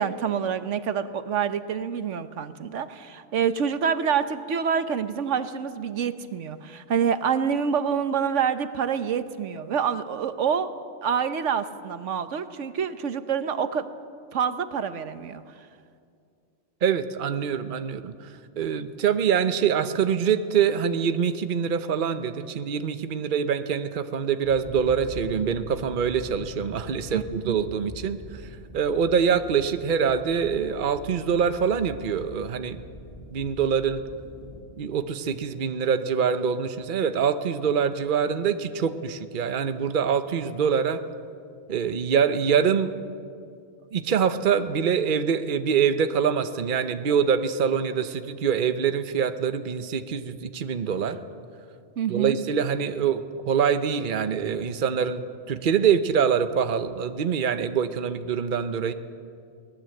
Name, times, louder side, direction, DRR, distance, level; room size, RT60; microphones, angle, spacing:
voice 1, 0.0-10.7 11.0-13.9 14.3-15.6 27.1-27.6 52.0-52.3, right 7 dB, 85° right, 11 dB, 1.2 m, -27 dB
voice 2, 16.8-28.4 28.7-32.8 33.3-34.0 34.8-41.0 41.7-42.9 43.9-51.2 52.1-58.9, right 7 dB, 50° right, 10 dB, 0.9 m, -25 dB
sound 1, 24.4-34.6, equal, 30° left, 3.1 m, -43 dB
23.0 x 18.5 x 7.8 m, 2.3 s
omnidirectional pair, 1.2 m